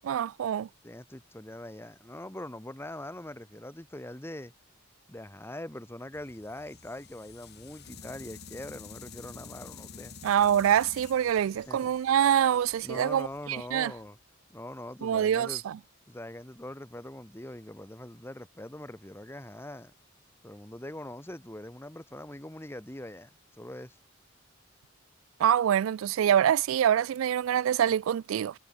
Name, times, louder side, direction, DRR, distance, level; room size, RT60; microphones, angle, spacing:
voice 1, 0.0-0.7 10.2-13.9 15.0-15.7 25.4-28.5, right 9 dB, 75° right, 0.3 m, -25 dB
voice 2, 0.8-4.5 5.1-10.2 11.7-12.0 12.8-14.2 14.5-15.6 16.1-19.9 20.4-23.3 23.6-24.0, left 1 dB, 10° left, 1.5 m, -42 dB
sound 1, 6.1-14.2, left 6 dB, 55° left, 1.4 m, -49 dB
head